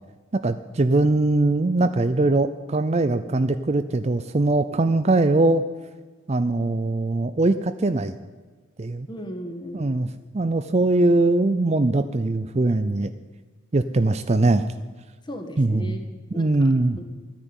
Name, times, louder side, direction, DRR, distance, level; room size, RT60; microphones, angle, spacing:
voice 1, 0.3-5.6 6.3-8.2 8.8-9.1 9.7-10.1 10.3-13.1 13.7-14.7 15.6-16.0 16.4-17.0, right 2 dB, 30° right, 11 dB, 0.5 m, -21 dB
voice 2, 9.1-9.9 15.2-17.0, equal, 20° left, 5 dB, 1.6 m, -37 dB
13.5 x 10.0 x 9.0 m, 1.4 s
head